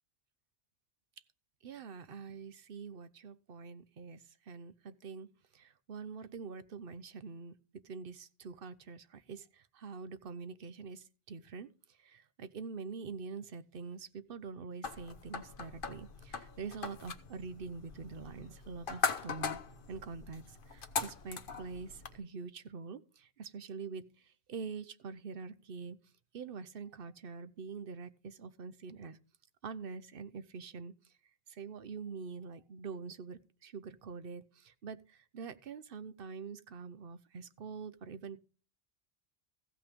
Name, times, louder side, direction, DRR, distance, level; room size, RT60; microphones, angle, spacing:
voice 1, 1.6-19.6 19.9-26.0 26.3-29.2 29.6-31.1 31.5-38.4, right 5 dB, 60° right, 1.0 m, -45 dB
sound 1, 14.8-22.2, left 5 dB, 55° left, 1.1 m, -40 dB
15.0 x 5.8 x 5.2 m
omnidirectional pair, 1.1 m